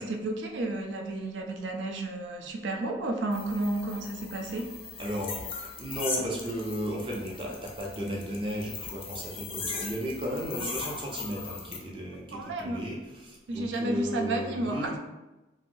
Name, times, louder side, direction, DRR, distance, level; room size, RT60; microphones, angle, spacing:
voice 1, 0.0-4.7 12.3-12.8 13.5-15.0, right 2 dB, 80° right, 3 dB, 0.4 m, -32 dB
sound 1, 3.3-11.8, left 5 dB, 30° left, 0.4 m, -39 dB
voice 2, 5.0-15.0, equal, 30° right, -2 dB, 0.5 m, -35 dB
3.1 x 2.6 x 2.6 m, 1.1 s
head